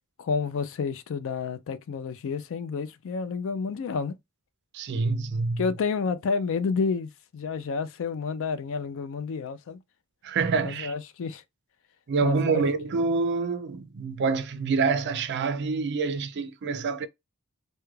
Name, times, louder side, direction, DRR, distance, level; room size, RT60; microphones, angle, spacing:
voice 1, 0.2-4.1 5.6-9.8 10.6-11.4 12.2-12.6, left 5 dB, 60° left, 0.4 m, -30 dB
voice 2, 4.7-5.7 10.2-10.9 12.1-17.1, right 4 dB, 50° right, 0.4 m, -26 dB
2.3 x 2.1 x 3.0 m
head